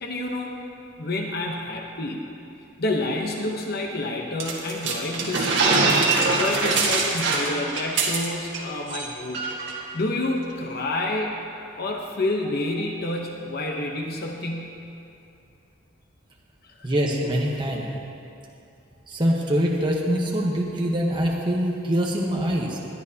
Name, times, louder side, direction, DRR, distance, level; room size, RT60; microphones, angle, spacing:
voice 1, 0.0-0.6 1.0-2.3 2.8-5.9 6.3-9.4 9.9-11.4 11.8-14.8 16.6-16.9, left 2 dB, 50° left, 1 dB, 0.8 m, -29 dB
sound 1, 4.4-8.6 8.9-9.0 9.3-9.7, right 3 dB, 65° right, 1.7 m, -23 dB
voice 2, 16.8-17.9 19.1-22.8, equal, 25° right, -2 dB, 1.0 m, -24 dB
20.0 x 11.0 x 2.8 m, 2.7 s
head